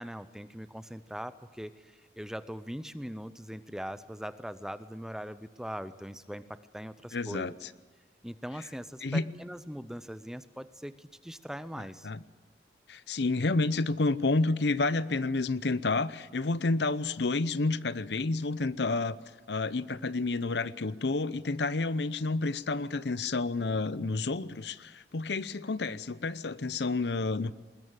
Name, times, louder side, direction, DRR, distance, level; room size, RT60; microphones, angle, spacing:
voice 1, 0.0-7.5 8.2-12.1, equal, 5° right, 13 dB, 0.6 m, -41 dB
voice 2, 7.1-7.7 8.6-8.7 9.0-9.2 11.8-12.2 12.9-19.2 19.5-27.5, left 3 dB, 70° left, 16 dB, 0.7 m, -30 dB
21.0 x 20.5 x 9.0 m, 1.2 s
head